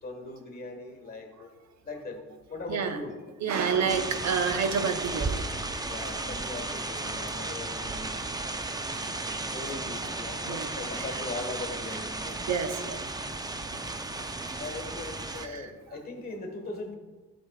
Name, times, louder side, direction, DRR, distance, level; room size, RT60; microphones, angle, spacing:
voice 1, 0.0-1.5 1.8-2.2 2.5-3.2 3.5-4.0 5.8-8.3 9.5-12.4 14.6-17.0, left 3 dB, 30° left, 3 dB, 1.6 m, -40 dB
voice 2, 3.4-5.4 10.5-10.7 11.0-11.1 12.5-13.0 13.7-13.8 15.4-15.7, right 6 dB, 65° right, 7 dB, 0.9 m, -29 dB
sound 1, 3.9-15.5, right 2 dB, 15° right, 0.5 m, -34 dB
11.5 x 6.4 x 2.4 m, 1.3 s
cardioid pair, 90°, 30 cm